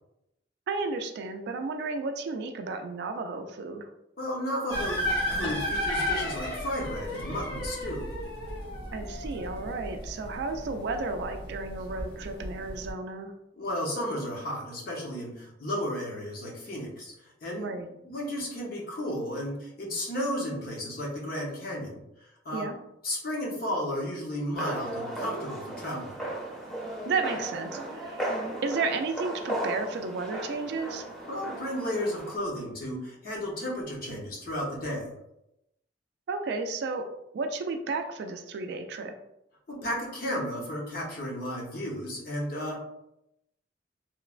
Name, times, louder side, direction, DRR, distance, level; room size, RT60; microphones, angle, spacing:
voice 1, 0.7-3.9 8.9-13.3 17.6-17.9 22.5-22.8 27.0-28.3 28.6-31.1 36.3-37.1 37.3-39.1, right 4 dB, 65° right, 7 dB, 0.3 m, -33 dB
voice 2, 4.2-5.0 5.3-8.1 13.6-17.1 17.4-17.7 18.0-22.0 22.4-22.7 23.0-26.3 31.3-35.1 39.7-42.8, equal, 55° left, -3 dB, 0.8 m, -33 dB
sound 1, 4.7-12.9, left 1 dB, 80° left, 1.2 m, -34 dB
sound 2, 24.5-32.4, right 1 dB, ahead, 0.6 m, -36 dB
3.1 x 2.1 x 2.3 m, 0.84 s
head